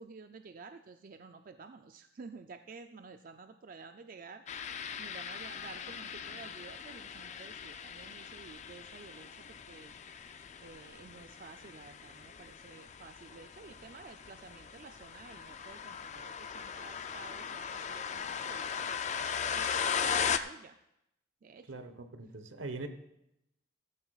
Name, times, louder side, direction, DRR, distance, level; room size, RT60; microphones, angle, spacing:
voice 1, 0.0-9.9 10.6-20.8 21.4-21.9 22.8-22.9, right 4 dB, 45° right, 7 dB, 0.4 m, -52 dB
sound 1, 4.5-20.4, left 7 dB, 35° left, 0.4 m, -38 dB
voice 2, 21.7-22.9, right 3 dB, 80° right, 9 dB, 1.0 m, -42 dB
15.0 x 14.0 x 2.4 m, 0.83 s
head